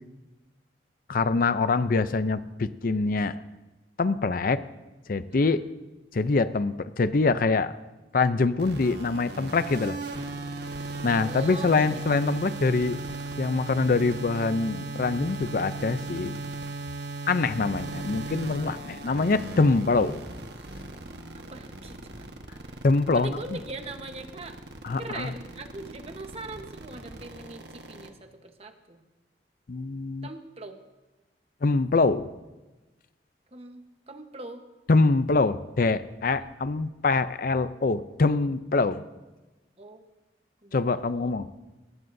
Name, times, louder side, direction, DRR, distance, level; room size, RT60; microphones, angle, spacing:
voice 1, 1.1-3.4 4.0-4.6 5.1-5.6 6.1-7.8 8.1-10.0 11.0-13.0 13.4-16.4 17.3-20.2 22.8-23.6 24.8-25.3 29.7-30.3 31.6-32.3 34.9-39.0 40.7-41.5, left 3 dB, 50° left, 13 dB, 0.5 m, -24 dB
voice 2, 5.3-5.6 11.2-12.5 21.3-22.1 22.7-22.8 23.1-24.6 25.0-29.0 30.2-30.8 33.5-34.6 36.4-36.5 39.8-40.0 40.6-41.3, right 2 dB, 35° right, 6 dB, 1.1 m, -41 dB
sound 1, 8.6-28.1, right 3 dB, 65° right, 1.3 m, -37 dB
21.0 x 19.0 x 2.7 m, 1.1 s
head